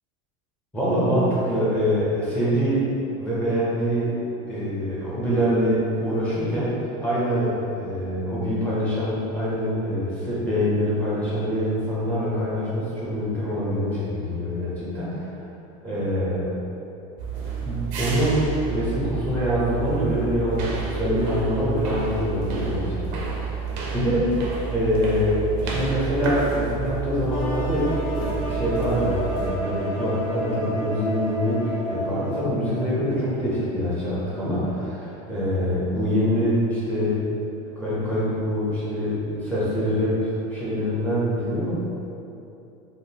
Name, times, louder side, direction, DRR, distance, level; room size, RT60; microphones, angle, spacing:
voice 1, 0.7-2.8 3.2-4.1 4.5-6.7 7.0-15.3 15.8-16.5 17.6-24.3 24.7-37.2 37.8-41.7, equal, 10° left, -10 dB, 0.7 m, -25 dB
sound 1, 17.2-29.5, right 5 dB, 60° right, 0.5 m, -30 dB
sound 2, 27.3-33.1, equal, 80° left, 0.9 m, -31 dB
3.5 x 2.2 x 2.7 m, 2.8 s
supercardioid pair, 150°, 17 cm